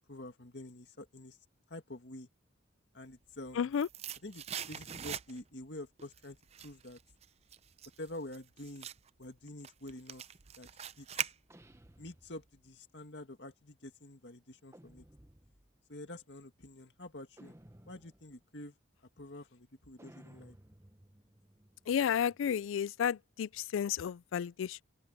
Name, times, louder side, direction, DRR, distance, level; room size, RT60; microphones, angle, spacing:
voice 1, 0.0-1.4 1.7-2.3 2.9-3.7 4.2-7.0 8.0-8.9 9.2-10.2 10.6-10.7 11.0-11.1 12.0-15.1 15.9-17.6 17.9-18.8 19.2-20.6, left 1 dB, 60° left, 2.1 m, -47 dB
sound 1, 3.2-5.6 6.0-11.9 12.2-12.3, right 8 dB, 35° right, 0.5 m, -43 dB
voice 2, 3.6-3.9 21.9-24.8, left 8 dB, 90° left, 0.3 m, -32 dB
sound 2, 11.5-12.8 14.7-15.8 17.4-18.4 20.0-22.7, right 1 dB, 15° right, 1.1 m, -59 dB
open air
head